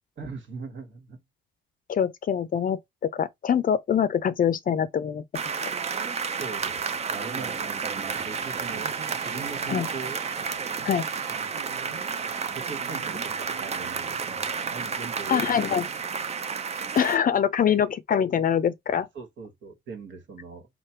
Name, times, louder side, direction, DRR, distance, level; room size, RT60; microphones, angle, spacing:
voice 1, 0.2-1.2 6.4-8.9 9.2-10.2 11.3-11.5 12.5-15.7 17.6-17.8 19.1-20.7, right 5 dB, 70° right, 1.4 m, -40 dB
voice 2, 1.9-5.2 9.7-9.9 10.8-11.0 15.3-15.9 16.9-19.1, left 8 dB, 45° left, 0.5 m, -24 dB
sound 1, 5.3-17.2, right 6 dB, 35° right, 0.5 m, -31 dB
Electric guitar, 8.1-16.1, right 7 dB, 85° right, 0.9 m, -46 dB
3.2 x 2.2 x 4.3 m
cardioid pair, 90°, 20 cm